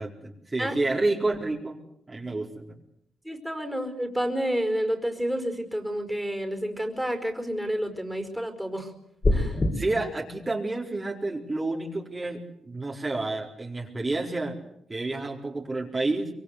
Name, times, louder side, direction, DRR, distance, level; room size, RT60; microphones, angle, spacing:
voice 1, 0.0-1.8 2.1-2.8 9.7-14.6 14.9-16.3, right 2 dB, 30° right, -1 dB, 4.5 m, -29 dB
voice 2, 3.2-8.9 9.3-9.6, equal, 5° right, 6 dB, 5.1 m, -29 dB
sound 1, 9.2-9.7, left 2 dB, 40° left, 6.1 m, -22 dB
25.0 x 23.0 x 8.2 m, 0.78 s
hypercardioid pair, 45°, 0 cm